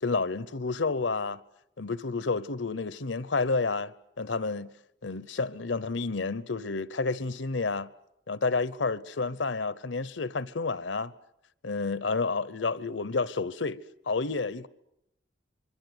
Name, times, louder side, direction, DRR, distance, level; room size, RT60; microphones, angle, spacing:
voice 1, 0.0-1.4 1.8-4.7 5.0-7.9 8.3-11.1 11.6-13.8 14.1-14.7, left 4 dB, 75° left, 0.9 m, -30 dB
25.5 x 23.5 x 8.0 m
head